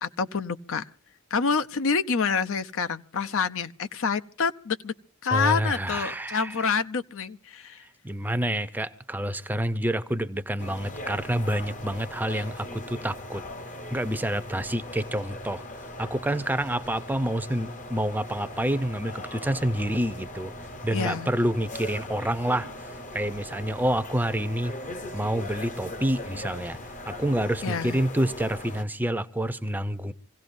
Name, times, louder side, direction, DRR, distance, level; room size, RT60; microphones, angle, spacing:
voice 1, 0.0-0.8 1.3-4.9 5.2-7.8 20.9-21.3 27.6-28.0, left 5 dB, 65° left, 0.7 m, -27 dB
voice 2, 5.3-6.7 8.0-13.4 13.9-15.6 16.0-20.5 20.8-24.7 25.1-26.8 27.1-30.1, right 1 dB, 10° right, 0.6 m, -28 dB
sound 1, 10.6-28.8, left 1 dB, 35° left, 0.9 m, -40 dB
26.5 x 16.5 x 2.6 m
head